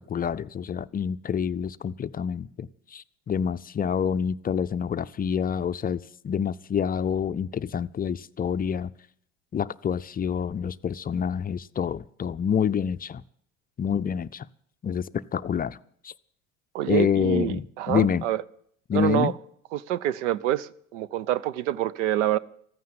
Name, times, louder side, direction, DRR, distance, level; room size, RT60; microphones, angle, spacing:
voice 1, 0.1-8.9 9.5-13.2 13.8-14.5 14.8-15.8 16.0-16.1 16.9-18.2 18.9-19.3, left 7 dB, 25° left, 0.5 m, -27 dB
voice 2, 16.7-18.4 18.9-19.3 19.7-22.4, right 13 dB, 80° right, 0.7 m, -26 dB
14.5 x 9.3 x 9.7 m
hypercardioid pair, 75°, 36 cm